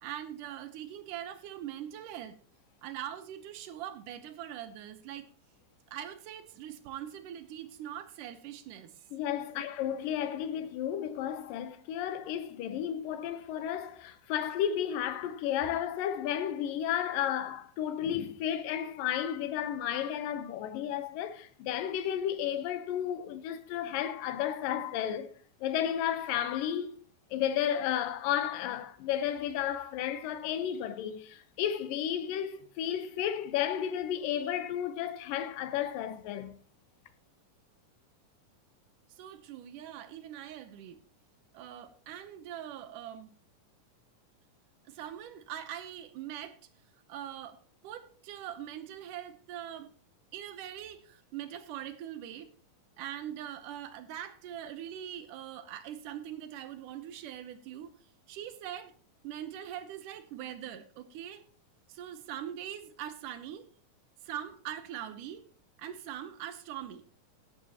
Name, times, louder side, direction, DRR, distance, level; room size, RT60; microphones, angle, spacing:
voice 1, 0.0-2.4 2.8-5.3 5.9-8.9 9.5-9.6 39.1-41.0 41.5-43.3 44.9-46.6 47.1-49.9 50.3-52.5 53.0-57.9 58.3-58.9 59.2-61.4 61.9-63.7 64.2-65.5 65.8-67.1, right 11 dB, 75° right, 2.3 m, -42 dB
voice 2, 9.1-25.3 25.6-26.9 27.3-36.5, left 10 dB, 90° left, 2.6 m, -33 dB
13.5 x 11.0 x 2.9 m
omnidirectional pair, 3.8 m